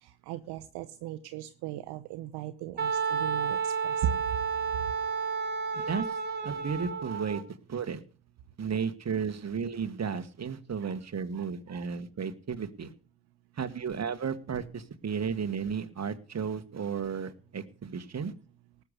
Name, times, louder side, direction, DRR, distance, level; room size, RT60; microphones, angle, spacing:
voice 1, 0.0-4.2 10.8-10.9 11.3-11.9, right 10 dB, 70° right, 10 dB, 0.9 m, -37 dB
Wind instrument woodwind instrument, 2.8-7.4, right 5 dB, 25° right, 4.1 m, -31 dB
voice 2, 5.7-6.1 6.4-7.4 7.7-8.0 8.6-12.9 13.6-18.3, right 6 dB, 40° right, 9 dB, 1.7 m, -33 dB
18.5 x 7.0 x 6.6 m, 0.40 s
hypercardioid pair, 45°, 41 cm